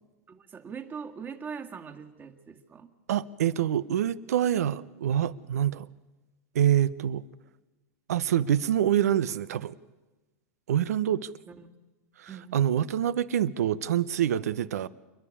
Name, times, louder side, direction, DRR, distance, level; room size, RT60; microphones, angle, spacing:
voice 1, 0.3-2.9 11.5-11.7 12.3-12.6, right 6 dB, 25° right, 1.7 m, -41 dB
voice 2, 3.1-5.9 6.5-7.2 8.1-9.7 10.7-11.3 12.2-14.9, right 10 dB, 85° right, 0.8 m, -26 dB
28.0 x 10.5 x 9.9 m
hypercardioid pair, 120°, 8 cm